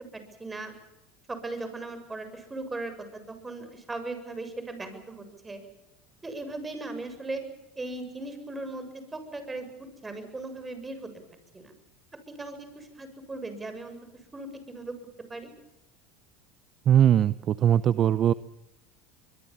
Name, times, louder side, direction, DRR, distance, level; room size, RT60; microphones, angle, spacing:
voice 1, 0.1-0.7 1.3-5.6 6.2-7.4 7.8-11.1 11.5-11.7 12.3-14.0 14.3-15.0 15.3-15.5, right 2 dB, 15° right, 8 dB, 7.2 m, -38 dB
voice 2, 16.9-18.3, right 10 dB, 40° right, 16 dB, 0.8 m, -20 dB
24.5 x 22.5 x 7.3 m, 0.92 s
supercardioid pair, 105°, 0 cm